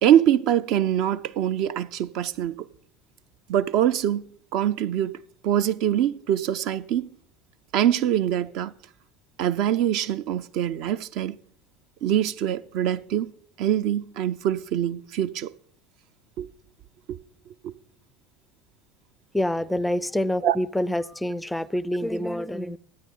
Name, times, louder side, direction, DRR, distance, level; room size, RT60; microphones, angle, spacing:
voice 1, 0.0-2.7 3.5-5.1 5.4-7.1 7.7-8.7 9.4-11.4 12.0-13.3 13.6-15.5 16.4-16.5 17.1-17.2 17.6-17.7 20.4-20.6, right 10 dB, 50° right, 0.5 m, -24 dB
voice 2, 19.3-22.8, left 1 dB, 5° left, 0.4 m, -27 dB
13.5 x 9.5 x 5.4 m
figure-of-eight pair, 70°, 0 cm